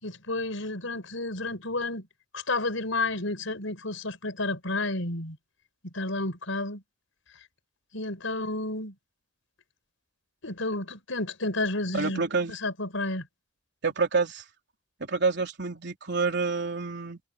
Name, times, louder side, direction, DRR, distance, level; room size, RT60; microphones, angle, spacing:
voice 1, 0.0-2.1 2.3-5.4 5.8-6.8 7.9-8.9 10.4-12.2 12.5-13.2, left 2 dB, 75° left, 5.6 m, -31 dB
voice 2, 11.9-12.5 13.8-14.4 15.0-17.2, right 4 dB, 60° right, 3.8 m, -28 dB
head